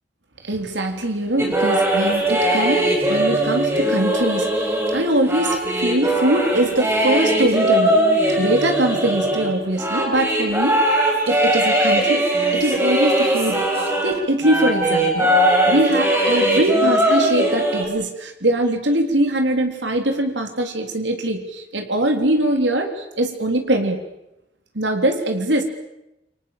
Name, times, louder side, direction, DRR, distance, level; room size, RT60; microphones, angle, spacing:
voice 1, 0.4-15.3 15.7-24.0 24.7-25.6, right 1 dB, 85° right, 4 dB, 3.6 m, -22 dB
sound 1, 1.4-14.2 14.4-17.8, right 1 dB, 15° right, 5.3 m, -20 dB
29.0 x 24.0 x 7.4 m, 0.89 s
head